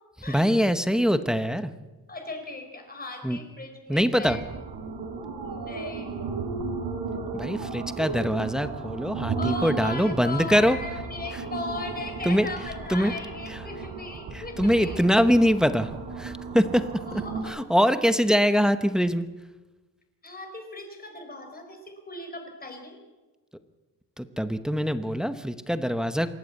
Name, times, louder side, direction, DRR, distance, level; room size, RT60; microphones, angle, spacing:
voice 1, 0.3-1.7 3.2-3.4 3.9-4.4 7.3-10.8 12.2-12.5 12.9-13.1 13.5-13.6 14.3-15.9 16.2-16.8 17.1-19.3 24.2-26.3, equal, ahead, 10 dB, 0.9 m, -23 dB
voice 2, 2.1-4.4 5.4-6.3 9.4-15.0 17.0-17.6 20.2-23.0, left 2 dB, 25° left, 5 dB, 4.4 m, -37 dB
sound 1, 4.2-17.4, right 4 dB, 90° right, 5.4 m, -35 dB
26.5 x 14.5 x 8.4 m, 1.2 s
wide cardioid pair, 165°, 38 cm